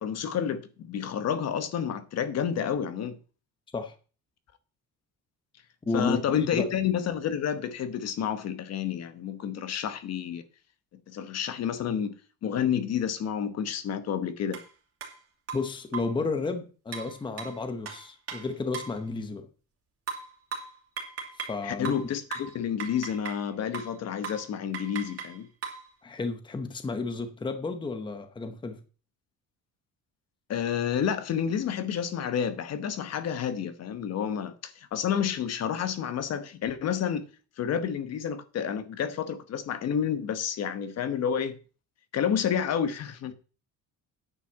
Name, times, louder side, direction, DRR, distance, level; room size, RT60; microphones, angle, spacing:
voice 1, 0.0-3.2 5.9-10.4 11.1-12.1 12.4-14.6 21.6-25.5 30.5-37.3 37.6-41.6 42.1-43.3, left 8 dB, 50° left, 1.1 m, -30 dB
voice 2, 5.9-6.7 15.5-19.5 21.5-22.0 26.0-28.8, left 3 dB, 15° left, 0.9 m, -32 dB
sound 1, 14.5-14.7 15.0-15.1 15.5-16.2 16.9-19.0 20.1-21.6 21.8-23.5 23.7-24.0 24.2-24.5 24.7-25.9, right 6 dB, 45° right, 3.1 m, -38 dB
9.7 x 5.8 x 7.2 m
cardioid pair, 170°, 34 cm